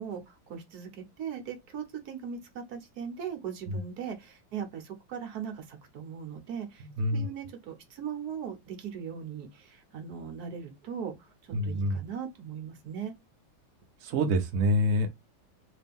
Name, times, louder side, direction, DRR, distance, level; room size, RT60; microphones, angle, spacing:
voice 1, 0.0-11.3 11.6-13.1, right 7 dB, 55° right, 1.3 m, -39 dB
voice 2, 6.8-7.3 11.5-12.0 14.0-15.1, equal, 70° right, 0.7 m, -27 dB
3.3 x 2.7 x 3.5 m
omnidirectional pair, 2.4 m